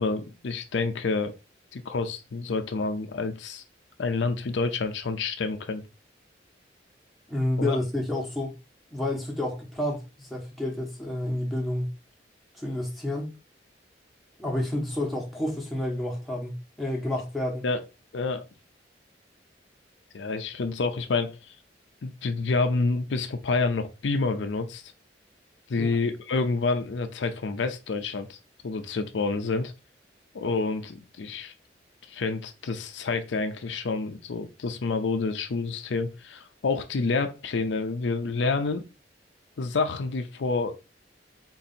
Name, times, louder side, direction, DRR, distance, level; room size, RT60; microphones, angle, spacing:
voice 1, 0.0-1.4 1.7-3.6 4.0-5.8 7.6-7.8 17.6-17.8 18.1-18.4 20.1-21.4 22.0-24.8 25.7-28.4 28.6-29.7 30.3-31.5 32.1-38.9 39.6-40.8, left 3 dB, 85° left, 0.5 m, -28 dB
voice 2, 7.3-8.6 8.9-11.9 12.6-13.3 14.4-17.7 25.7-26.0, left 1 dB, ahead, 1.2 m, -30 dB
3.8 x 2.7 x 4.2 m
head